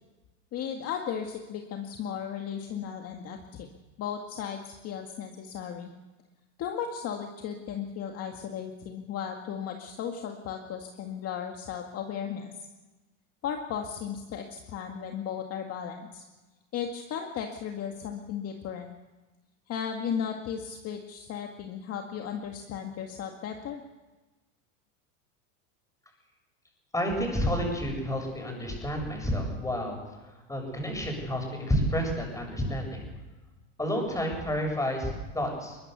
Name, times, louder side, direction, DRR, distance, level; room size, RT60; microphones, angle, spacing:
voice 1, 0.5-3.7 4.0-5.9 6.6-12.7 13.4-16.2 16.7-19.0 19.7-23.8, left 8 dB, 40° left, 3 dB, 2.1 m, -35 dB
voice 2, 26.9-30.0 30.5-33.1 33.8-35.8, equal, 10° left, 2 dB, 7.6 m, -30 dB
22.5 x 20.0 x 6.9 m, 1.2 s
supercardioid pair, 120°, 38 cm